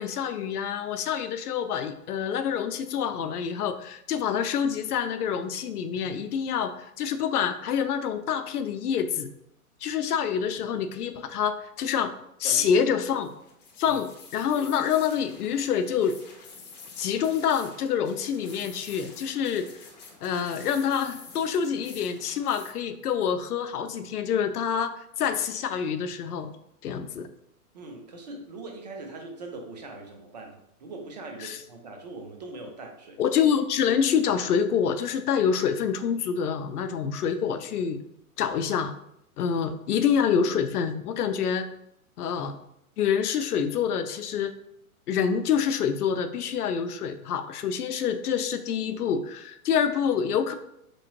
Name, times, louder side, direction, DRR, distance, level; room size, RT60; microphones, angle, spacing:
voice 1, 0.0-9.3 9.8-12.1 12.4-13.3 13.8-16.2 17.0-19.7 20.2-26.5 26.8-27.3 31.4-31.6 33.2-38.0 38.4-38.9 39.4-41.7 42.2-42.6 43.0-44.5 45.1-50.5, left 7 dB, 85° left, 9 dB, 0.6 m, -27 dB
voice 2, 12.4-12.8 13.8-14.0 27.7-33.2, right 2 dB, 30° right, 2 dB, 0.4 m, -41 dB
sound 1, 13.1-22.7, left 4 dB, 30° left, 0.5 m, -48 dB
3.5 x 3.0 x 2.9 m, 0.78 s
hypercardioid pair, 150°, 45 cm